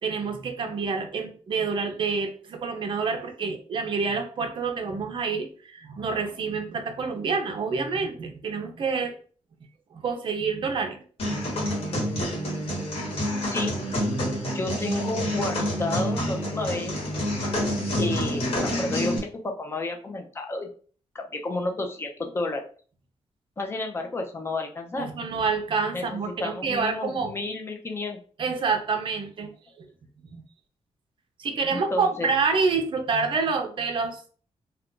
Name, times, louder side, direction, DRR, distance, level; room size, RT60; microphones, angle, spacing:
voice 1, 0.0-9.2 9.9-11.0 25.0-27.3 28.4-29.5 29.8-29.9 30.3-30.4 31.4-34.3, right 5 dB, 45° right, 5 dB, 0.5 m, -27 dB
sound 1, 11.2-19.2, equal, 55° left, 1.2 m, -28 dB
voice 2, 14.5-17.0 18.0-20.7 21.1-22.6 23.6-25.1 25.9-28.2 31.7-32.3, left 2 dB, 20° left, 3 dB, 0.5 m, -31 dB
2.4 x 2.2 x 3.6 m, 0.42 s
wide cardioid pair, 165°, 11 cm